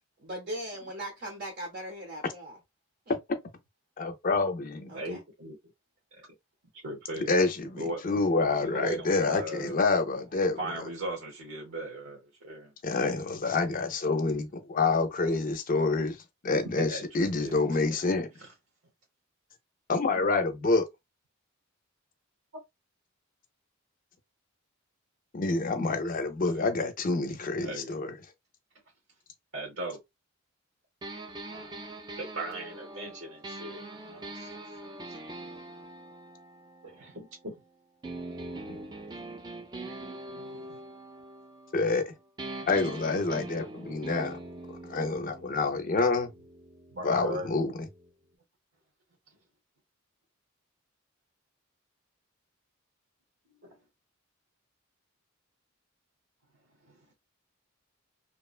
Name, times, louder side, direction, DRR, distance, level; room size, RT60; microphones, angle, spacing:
voice 1, 0.2-2.6 3.1-3.2 4.9-5.2, right 1 dB, 50° right, 0.8 m, -39 dB
voice 2, 4.0-4.9 7.3-10.6 12.8-16.2 16.4-18.3 19.9-20.9 25.3-28.1 41.7-42.1 42.6-44.4 44.8-46.3 47.0-47.9, left 3 dB, 40° left, 0.5 m, -27 dB
voice 3, 4.9-5.6 6.2-6.3 6.8-7.3 7.8-8.0 8.6-9.8 10.4-12.7 16.8-17.8 26.5-26.6 27.6-27.9 29.5-30.0 31.4-35.4 36.8-37.5 40.3-40.8 46.9-47.5 53.6-53.7 56.9-57.0, right 1 dB, 75° right, 1.0 m, -39 dB
sound 1, 31.0-37.5 38.0-42.1 42.4-48.1, right 2 dB, 20° right, 0.4 m, -43 dB
2.8 x 2.1 x 2.3 m
head